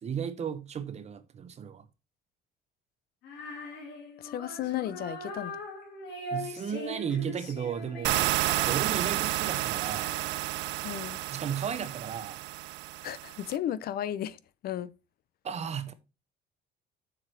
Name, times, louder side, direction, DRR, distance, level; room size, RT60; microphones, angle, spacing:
voice 1, 0.0-1.9 6.3-8.3 8.6-10.2 11.3-12.4 15.4-15.9, right 7 dB, 35° right, 0.9 m, -34 dB
Female singing, 3.2-10.6, equal, 75° left, 2.6 m, -41 dB
voice 2, 4.2-5.5 10.8-11.2 13.0-14.9, left 11 dB, 55° left, 0.5 m, -34 dB
sound 1, 8.0-13.6, right 16 dB, 80° right, 0.5 m, -31 dB
7.6 x 4.9 x 4.4 m
cardioid pair, 130°, 19 cm